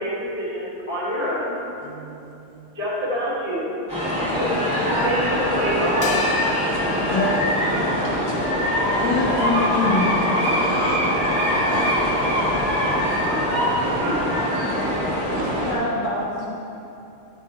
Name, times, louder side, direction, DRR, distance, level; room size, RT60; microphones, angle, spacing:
voice 1, 0.0-1.6 2.7-3.7 4.2-6.2 13.8-14.4, equal, 25° left, -9 dB, 0.7 m, -26 dB
voice 2, 1.8-2.7 7.0-7.3 8.9-9.3 10.6-11.1 11.7-12.0 12.5-13.2 15.3-15.7, right 5 dB, 80° right, 2 dB, 2.1 m, -38 dB
sound 1, 3.9-15.7, equal, 10° right, 0.4 m, -22 dB
sound 2, 6.0-8.5, left 6 dB, 85° left, 1.6 m, -36 dB
voice 3, 9.0-10.3 15.7-16.5, left 3 dB, 70° left, -5 dB, 1.9 m, -24 dB
11.0 x 4.8 x 4.6 m, 2.8 s
omnidirectional pair, 4.0 m